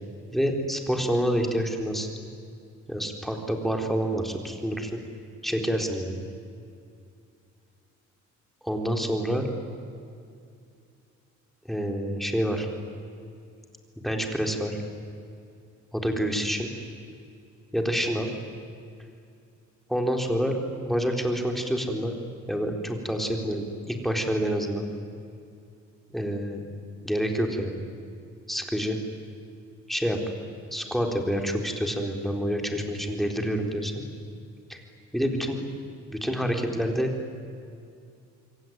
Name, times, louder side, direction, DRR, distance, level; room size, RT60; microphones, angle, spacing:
voice 1, 0.3-2.1 2.9-5.0 5.4-6.2 8.6-9.5 11.7-12.7 14.0-14.8 15.9-16.7 17.7-18.3 19.9-22.2 22.5-24.8 26.1-26.6 27.0-27.8 28.5-29.0 29.9-30.2 30.7-34.0 34.7-34.8 35.1-35.6 36.1-37.1, equal, ahead, 3 dB, 4.2 m, -27 dB
27.5 x 23.0 x 9.5 m, 2.5 s
cardioid pair, 90°, 30 cm